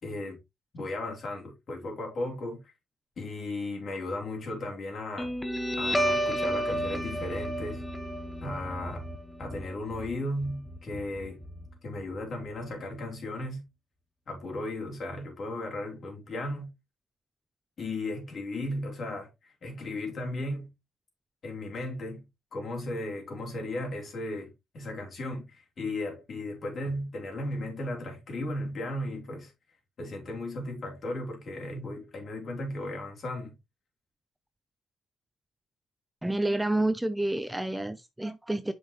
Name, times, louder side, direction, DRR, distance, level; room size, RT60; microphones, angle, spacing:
voice 1, 0.0-0.4 0.7-2.7 3.2-5.3 5.8-7.8 8.4-9.1 9.4-11.4 11.8-13.7 14.3-16.7 17.8-20.7 21.4-29.5 30.0-33.6, left 1 dB, 50° left, 3.5 m, -35 dB
Guitar, 5.2-12.2, equal, 5° left, 1.1 m, -32 dB
voice 2, 36.2-38.7, right 1 dB, 10° right, 0.6 m, -29 dB
7.3 x 5.3 x 3.1 m
cardioid pair, 90°, 0 cm